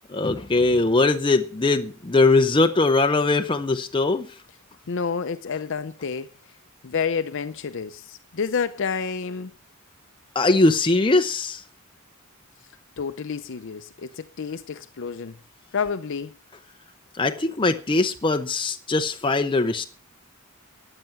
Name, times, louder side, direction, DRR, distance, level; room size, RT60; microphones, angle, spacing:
voice 1, 0.1-4.3 10.3-11.6 17.1-19.8, left 3 dB, 25° left, 0.7 m, -21 dB
voice 2, 4.9-6.3 6.8-9.5 13.0-15.4 15.7-16.3, left 5 dB, 60° left, 0.6 m, -29 dB
13.5 x 9.0 x 6.0 m
head